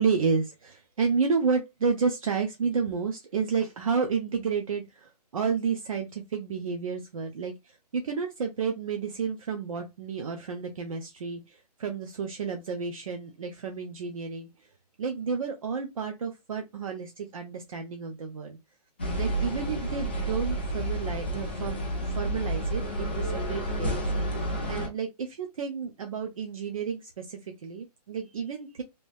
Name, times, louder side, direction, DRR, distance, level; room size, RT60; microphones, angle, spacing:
voice 1, 0.0-14.7 15.0-18.6 19.1-24.0 24.3-28.8, right 5 dB, 55° right, 0.6 m, -31 dB
sound 1, 19.0-24.9, right 1 dB, 15° left, 0.3 m, -30 dB
2.9 x 2.7 x 3.3 m
hypercardioid pair, 175°, 21 cm